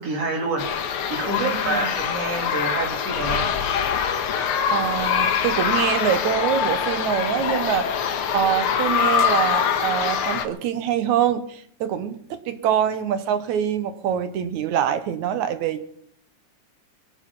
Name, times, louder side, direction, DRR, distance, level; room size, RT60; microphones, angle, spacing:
voice 1, 0.0-3.5, right 3 dB, 55° right, 2 dB, 4.0 m, -28 dB
sound 1, 0.6-10.5, left 7 dB, 60° left, 1.7 m, -24 dB
voice 2, 1.3-1.9 4.7-7.9 8.3-15.8, right 9 dB, 80° right, 11 dB, 2.4 m, -24 dB
23.0 x 9.7 x 5.6 m, 0.67 s
omnidirectional pair, 3.4 m